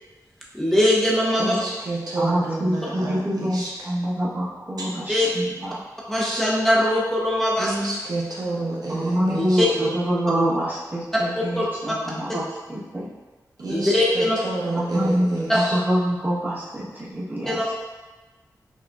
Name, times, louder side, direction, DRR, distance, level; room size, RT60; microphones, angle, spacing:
voice 1, 0.6-1.6 5.1-5.3 6.1-7.7 9.3-9.7 11.6-11.7 13.7-14.4 15.5-15.6 17.5-17.6, left 1 dB, 5° left, -5 dB, 0.7 m, -21 dB
voice 2, 1.4-3.9 7.6-9.9 13.6-15.8, right 2 dB, 70° right, -5 dB, 0.8 m, -29 dB
voice 3, 2.2-5.8 8.9-12.4 12.7-13.1 14.7-17.7, equal, 30° right, -8 dB, 1.2 m, -25 dB
6.0 x 2.3 x 2.4 m, 1.2 s
wide cardioid pair, 70°, 7 cm